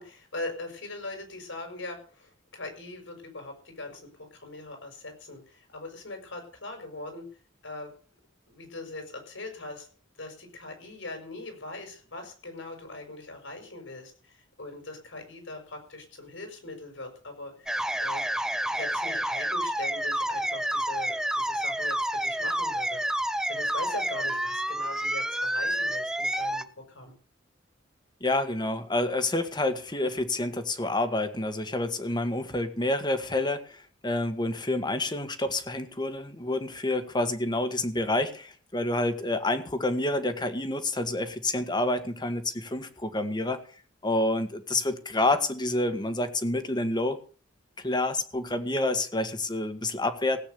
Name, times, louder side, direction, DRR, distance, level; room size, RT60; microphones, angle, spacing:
voice 1, 0.0-7.2 7.6-7.9 8.5-9.9 10.2-18.2 18.7-23.0 23.5-27.1, left 2 dB, 80° left, 5 dB, 6.3 m, -41 dB
sound 1, 17.7-26.6, right 1 dB, 5° right, 0.7 m, -29 dB
voice 2, 28.2-43.6 44.0-47.2 47.8-50.4, left 2 dB, 25° left, 9 dB, 1.6 m, -28 dB
17.0 x 8.7 x 6.8 m, 0.40 s
head